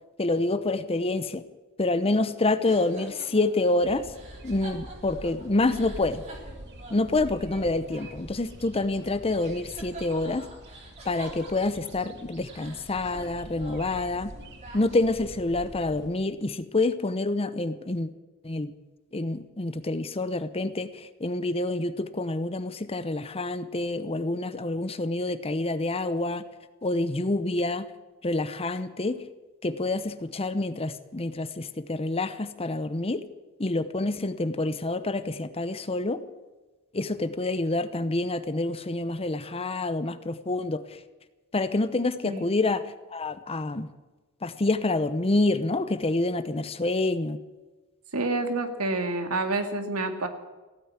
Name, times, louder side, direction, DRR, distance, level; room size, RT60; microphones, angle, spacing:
voice 1, 0.2-1.4 1.8-4.1 4.4-6.2 6.9-10.5 11.1-14.3 14.7-18.1 18.4-18.7 19.1-26.4 26.8-27.9 28.2-29.2 29.6-33.2 33.6-36.2 36.9-40.8 41.5-42.8 43.1-43.9 44.4-47.4, left 2 dB, 25° left, 13 dB, 0.7 m, -27 dB
sound 1, 2.7-9.1 9.4-12.1 12.4-15.3, right 2 dB, 30° right, 3.5 m, -47 dB
sound 2, 3.8-16.1, right 1 dB, 50° right, 1.9 m, -45 dB
voice 2, 48.1-50.3, right 2 dB, 85° right, 6 dB, 2.0 m, -28 dB
16.0 x 9.2 x 9.8 m, 1.2 s
head